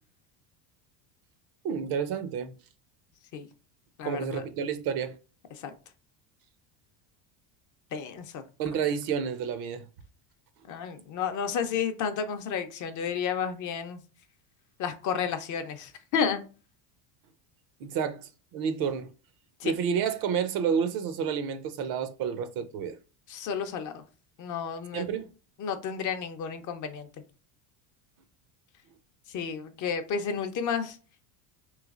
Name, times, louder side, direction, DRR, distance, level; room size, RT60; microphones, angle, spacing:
voice 1, 1.6-2.6 4.0-5.2 8.6-9.9 17.8-19.1 19.6-23.0 24.9-25.3, right 7 dB, 50° right, 0.5 m, -30 dB
voice 2, 4.0-4.4 5.5-5.7 7.9-8.4 10.7-14.0 14.8-16.4 19.6-19.7 23.3-24.0 24.4-25.0 25.6-27.1 29.3-31.0, left 7 dB, 40° left, 0.5 m, -31 dB
3.1 x 3.1 x 2.4 m
cardioid pair, 130°, 48 cm